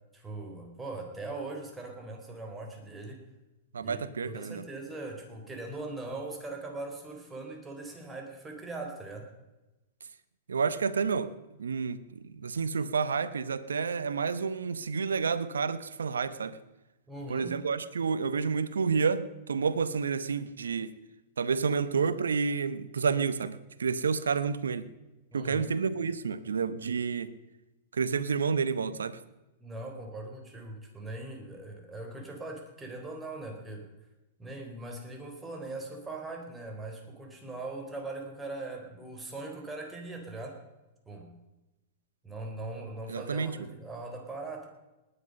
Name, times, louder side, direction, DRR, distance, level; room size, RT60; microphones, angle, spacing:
voice 1, 0.1-3.2 3.8-9.3 17.1-17.6 25.3-25.7 29.6-33.9 34.4-40.6 41.1-41.3 42.2-44.7, right 2 dB, 15° right, 2 dB, 4.0 m, -40 dB
voice 2, 3.7-4.6 10.5-11.3 11.6-16.6 17.3-21.0 21.4-24.9 25.3-27.3 27.9-29.2 43.1-43.6, right 5 dB, 85° right, 15 dB, 0.9 m, -30 dB
19.5 x 10.0 x 5.3 m, 1.0 s
hypercardioid pair, 110°, 0 cm